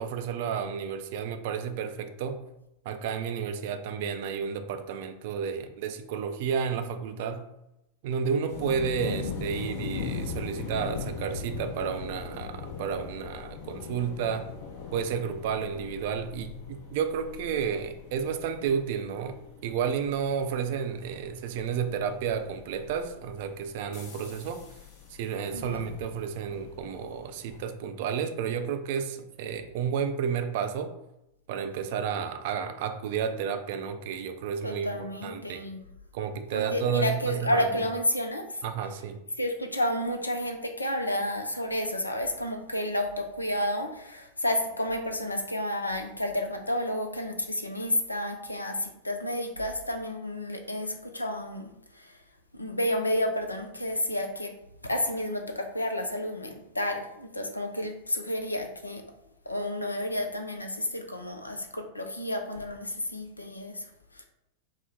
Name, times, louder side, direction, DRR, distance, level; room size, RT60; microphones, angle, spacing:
voice 1, 0.0-2.4 2.9-7.4 8.0-14.5 14.9-19.4 19.6-24.6 25.1-30.9 31.5-34.9 35.2-35.6 36.1-37.7 38.6-39.2, right 7 dB, 50° right, 8 dB, 0.4 m, -31 dB
sound 1, 8.5-27.6, left 6 dB, 50° left, 0.8 m, -40 dB
voice 2, 9.1-9.6 25.5-25.8 34.6-35.8 36.5-38.6 39.4-52.2 52.5-54.5 54.8-59.0 59.5-63.9 64.1-64.2, left 1 dB, 80° left, 5 dB, 0.5 m, -31 dB
4.1 x 2.1 x 3.7 m, 0.88 s
figure-of-eight pair, 90°, 0 cm